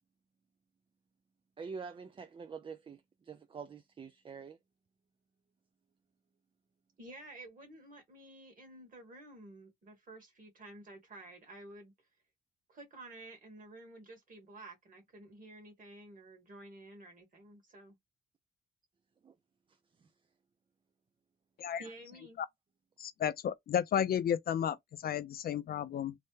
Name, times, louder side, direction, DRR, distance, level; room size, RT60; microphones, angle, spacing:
voice 1, 1.6-4.6 19.2-19.3 19.7-20.1 21.8-21.9, right 5 dB, 25° right, 0.4 m, -46 dB
voice 2, 7.0-12.1 12.7-18.0 21.8-22.4, right 2 dB, 45° right, 1.7 m, -52 dB
voice 3, 23.0-26.2, left 9 dB, 50° left, 0.4 m, -33 dB
3.2 x 2.1 x 3.1 m
cardioid pair, 90°, 20 cm